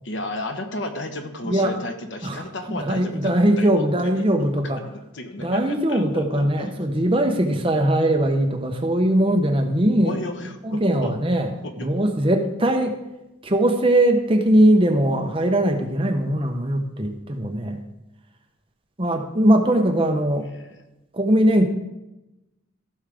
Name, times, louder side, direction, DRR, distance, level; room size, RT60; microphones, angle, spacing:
voice 1, 0.0-3.7 4.0-6.7 10.0-11.1 11.6-11.9 20.4-20.8, left 1 dB, 60° left, 5 dB, 1.1 m, -34 dB
voice 2, 2.7-4.8 5.4-10.2 10.6-11.5 11.8-13.0 13.4-17.8 19.0-20.5 21.1-21.7, right 1 dB, 25° right, 4 dB, 0.9 m, -20 dB
15.0 x 6.4 x 3.6 m, 0.95 s
head